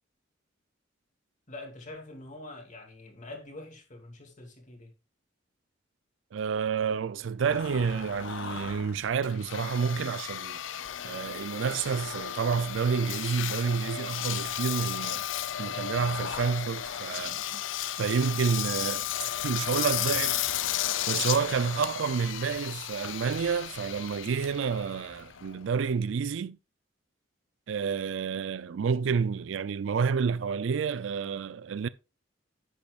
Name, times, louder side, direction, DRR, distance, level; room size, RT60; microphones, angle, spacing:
voice 1, 1.5-4.9, left 2 dB, 40° left, 2.6 m, -45 dB
voice 2, 6.3-10.6 11.0-15.2 15.6-17.6 18.0-20.4 21.1-26.6 27.7-31.9, right 6 dB, 80° right, 0.4 m, -29 dB
Engine, 7.5-25.9, left 11 dB, 90° left, 0.5 m, -34 dB
10.5 x 8.6 x 2.4 m
head